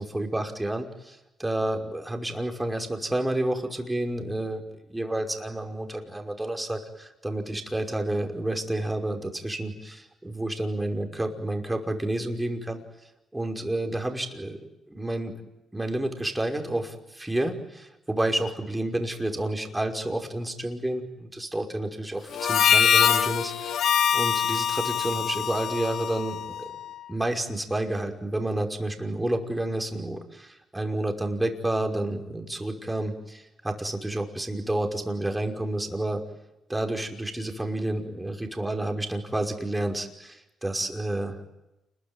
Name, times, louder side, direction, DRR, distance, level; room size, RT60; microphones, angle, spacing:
voice 1, 0.0-4.6 4.9-12.8 13.3-14.6 14.9-15.3 15.7-26.6 27.1-36.2 36.7-41.4, right 1 dB, 10° right, 4 dB, 5.5 m, -30 dB
Harmonica, 22.3-26.9, left 8 dB, 70° left, 1.5 m, -24 dB
29.0 x 21.5 x 9.3 m, 0.93 s
cardioid pair, 90°, 0 cm